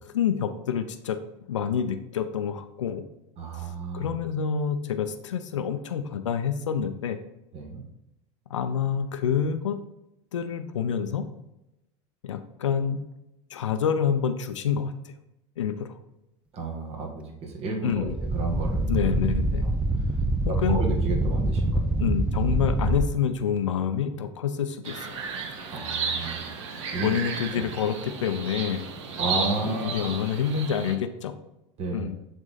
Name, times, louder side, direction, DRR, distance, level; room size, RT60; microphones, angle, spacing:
voice 1, 0.1-1.2 1.5-3.0 3.6-3.7 3.9-7.2 8.5-9.8 10.3-11.3 12.2-13.1 13.5-15.1 15.6-16.0 17.8-18.2 18.9-19.7 20.4-20.8 22.0-25.2 27.0-28.9 29.6-31.3 31.9-32.2, left 7 dB, 90° left, 9 dB, 0.6 m, -27 dB
voice 2, 3.4-4.1 7.5-7.8 16.5-19.1 19.6-19.7 20.5-22.0 25.7-27.1 27.5-27.6 29.2-30.2 31.8-32.1, right 3 dB, 40° right, 1 dB, 1.6 m, -32 dB
sound 1, 17.9-23.0, right 1 dB, 5° right, 0.5 m, -25 dB
sound 2, 24.8-31.0, right 5 dB, 75° right, 1.1 m, -33 dB
7.5 x 3.7 x 4.0 m, 0.89 s
hypercardioid pair, 90°, 15 cm